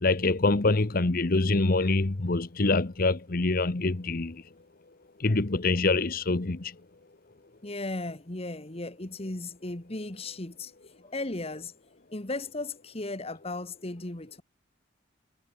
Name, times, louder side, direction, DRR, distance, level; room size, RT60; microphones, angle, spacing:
voice 1, 0.0-4.4 5.2-6.7, left 3 dB, 50° left, 1.0 m, -25 dB
voice 2, 7.6-10.7 11.0-11.7 12.1-14.4, left 2 dB, 30° left, 1.7 m, -36 dB
head